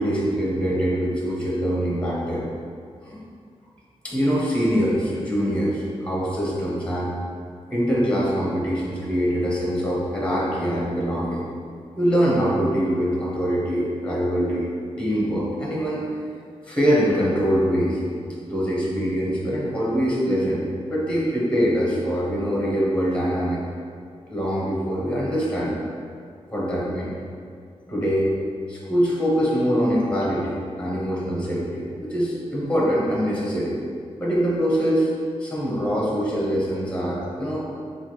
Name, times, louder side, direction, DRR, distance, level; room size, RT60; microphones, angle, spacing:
voice 1, 0.0-2.5 3.0-3.2 4.0-7.2 7.7-11.5 12.0-16.0 16.6-18.0 18.5-23.6 24.3-25.7 26.5-27.1 27.9-28.3 28.7-33.8 34.2-35.1 35.4-37.7, equal, 10° left, -6 dB, 0.9 m, -23 dB
5.6 x 2.3 x 3.1 m, 2.3 s
wide cardioid pair, 110°, 12 cm